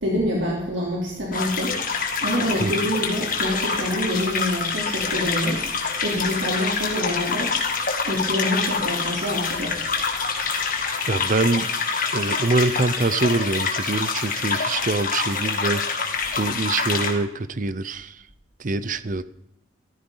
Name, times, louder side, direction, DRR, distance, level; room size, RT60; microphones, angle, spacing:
voice 1, 0.0-1.8 2.2-5.6 6.0-7.5 8.0-9.8, equal, 75° right, -3 dB, 3.1 m, -26 dB
sound 1, 1.3-17.1, left 5 dB, 45° left, 2.2 m, -26 dB
voice 2, 11.1-11.7 12.1-15.9 16.4-18.2 18.6-19.2, right 3 dB, 45° right, 16 dB, 0.6 m, -24 dB
14.5 x 14.5 x 3.9 m, 0.83 s
head